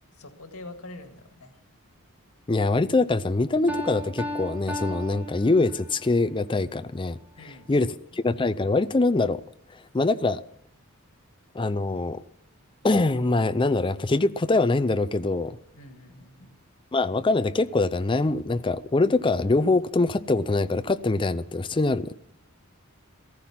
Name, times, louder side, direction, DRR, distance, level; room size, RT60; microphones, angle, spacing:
voice 1, 0.1-1.5 7.4-7.9 15.7-16.5, left 2 dB, 80° left, 1.9 m, -45 dB
voice 2, 2.5-7.2 7.7-9.4 9.9-10.4 11.5-12.2 12.8-15.6 16.9-22.1, left 2 dB, 25° left, 0.5 m, -23 dB
Piano, 3.7-6.1, left 1 dB, 10° right, 2.3 m, -35 dB
15.0 x 14.5 x 5.9 m
head